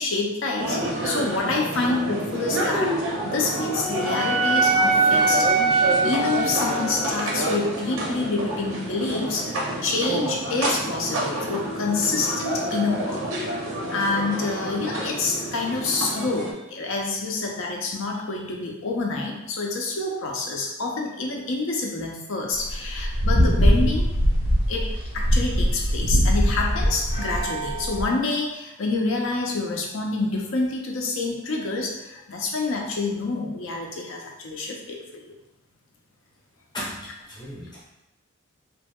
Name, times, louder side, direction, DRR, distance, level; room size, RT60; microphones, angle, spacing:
voice 1, 0.0-5.5 6.0-9.5 9.8-13.6 13.9-24.1 24.7-35.3, left 3 dB, 65° left, 1 dB, 0.5 m, -27 dB
sound 1, 0.6-16.5, right 1 dB, 70° right, 0.6 m, -29 dB
Wind instrument woodwind instrument, 3.1-7.3, right 3 dB, 20° right, 0.5 m, -23 dB
sound 2, 22.6-28.1, equal, 80° left, 0.9 m, -22 dB
voice 2, 36.7-37.9, left 1 dB, 20° left, -6 dB, 0.8 m, -36 dB
2.9 x 2.7 x 2.2 m, 0.96 s
head